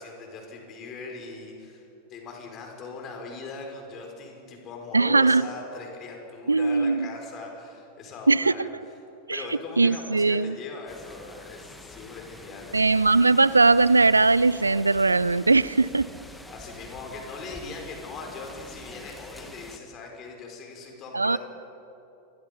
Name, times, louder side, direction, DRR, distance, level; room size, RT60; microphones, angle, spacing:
voice 1, 0.0-8.7 9.3-12.8 16.2-21.4, left 4 dB, 30° left, 1 dB, 5.9 m, -40 dB
voice 2, 4.9-5.4 6.5-7.1 8.3-8.7 9.3-9.4 9.8-10.6 12.7-16.1 21.1-21.4, right 3 dB, 80° right, 20 dB, 0.5 m, -20 dB
sound 1, 10.9-19.8, left 1 dB, 5° left, 2.0 m, -46 dB
27.5 x 23.5 x 5.6 m, 2.8 s
figure-of-eight pair, 90°, 0 cm